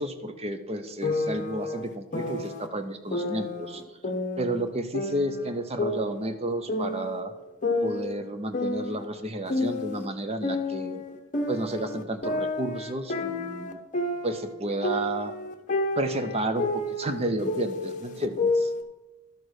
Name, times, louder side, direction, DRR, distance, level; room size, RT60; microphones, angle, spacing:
voice 1, 0.0-3.8 4.4-7.3 7.8-11.0 11.5-13.8 14.2-15.3 16.0-18.7, right 1 dB, 30° right, 8 dB, 0.7 m, -31 dB
sound 1, 1.0-2.7 3.1-4.7 4.9-7.2 7.6-10.1 10.4-14.5 14.8-18.8, left 2 dB, 35° left, 0.9 m, -30 dB
12.0 x 4.6 x 6.4 m, 1.0 s
head